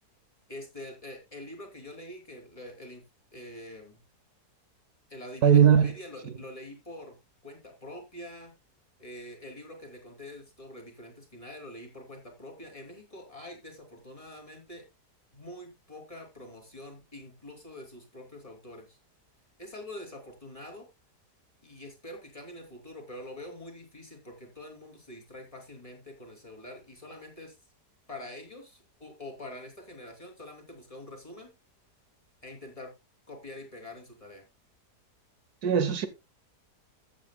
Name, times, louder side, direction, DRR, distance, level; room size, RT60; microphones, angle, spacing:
voice 1, 0.5-3.0 3.3-4.0 5.1-7.2 7.4-8.5 9.0-14.9 15.3-19.0 19.6-20.9 21.6-27.6 28.1-31.5 32.4-32.9 33.3-34.5, left 1 dB, 20° left, 3.1 m, -45 dB
voice 2, 5.4-5.8 35.6-36.1, right 8 dB, 70° right, 1.4 m, -19 dB
14.5 x 8.4 x 2.2 m
omnidirectional pair, 1.8 m